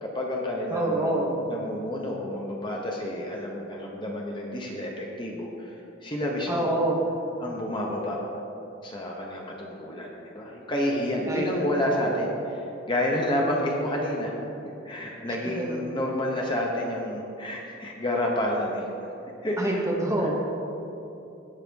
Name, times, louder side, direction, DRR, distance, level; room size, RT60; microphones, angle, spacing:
voice 1, 0.0-1.1 1.5-5.7 6.0-6.7 7.4-8.2 8.8-12.6 12.9-14.3 14.8-18.8 19.4-19.8 20.2-20.3, left 1 dB, 20° left, -1 dB, 0.9 m, -29 dB
voice 2, 0.7-1.5 6.5-7.1 11.3-11.5 11.8-12.2 15.3-15.8 19.6-19.8 20.0-20.3, right 1 dB, 15° right, -2 dB, 1.1 m, -27 dB
16.5 x 5.8 x 3.5 m, 2.9 s
head